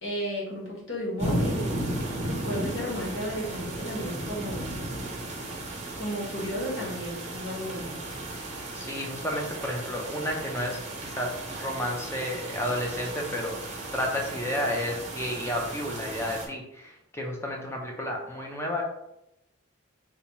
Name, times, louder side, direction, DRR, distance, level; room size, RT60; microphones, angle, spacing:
voice 1, 0.0-1.9 2.4-4.8 6.0-7.9, equal, 60° left, -4 dB, 1.3 m, -33 dB
sound 1, 1.2-16.5, right 1 dB, 30° right, 0.6 m, -35 dB
voice 2, 8.7-10.8 11.1-13.6 13.9-18.8, left 1 dB, 10° left, 0 dB, 0.5 m, -31 dB
3.4 x 3.0 x 3.0 m, 0.82 s
head